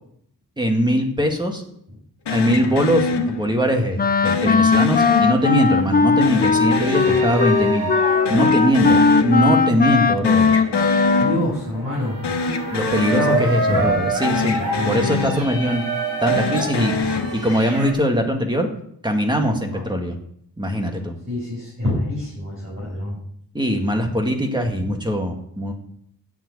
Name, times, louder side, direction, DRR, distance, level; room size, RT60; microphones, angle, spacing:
voice 1, 0.6-1.6 2.3-7.9 8.3-10.6 12.7-15.8 16.2-18.7 19.0-20.2 20.6-21.1 23.5-25.7, equal, 10° right, 3 dB, 1.9 m, -21 dB
sound 1, 2.3-3.8 4.2-5.8 6.2-8.0 8.2-9.8 10.1-11.8 12.2-14.0 14.2-15.8 16.2-17.9, left 4 dB, 90° left, 1.5 m, -26 dB
Wind instrument woodwind instrument, 4.0-11.5, left 5 dB, 25° left, 0.6 m, -18 dB
sound 2, 5.4-17.9, right 2 dB, 55° right, 4.3 m, -28 dB
voice 2, 11.2-12.3 13.1-13.4 13.7-14.0 14.7-14.9 17.1-17.2 19.7-19.9 21.3-23.1, left 1 dB, 30° right, -7 dB, 6.3 m, -25 dB
10.5 x 7.8 x 8.5 m, 0.69 s
wide cardioid pair, 150°, 39 cm